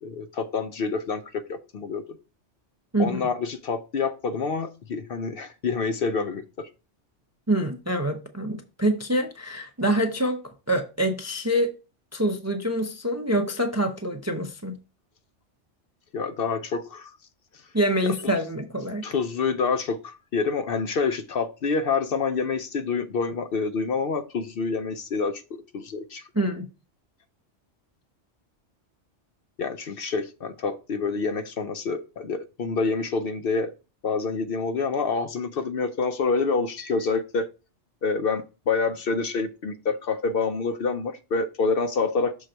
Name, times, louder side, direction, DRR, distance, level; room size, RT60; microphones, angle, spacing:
voice 1, 0.0-2.0 3.0-6.7 16.1-17.2 17.5-17.7 18.0-18.4 19.0-25.4 25.7-26.3 29.6-33.7 34.0-37.5 38.0-42.5, left 4 dB, 60° left, 0.7 m, -27 dB
voice 2, 7.5-10.4 10.7-11.7 12.1-14.8 17.7-19.0 26.3-26.7, right 1 dB, 20° right, 0.4 m, -25 dB
6.5 x 3.8 x 4.4 m
omnidirectional pair, 1.2 m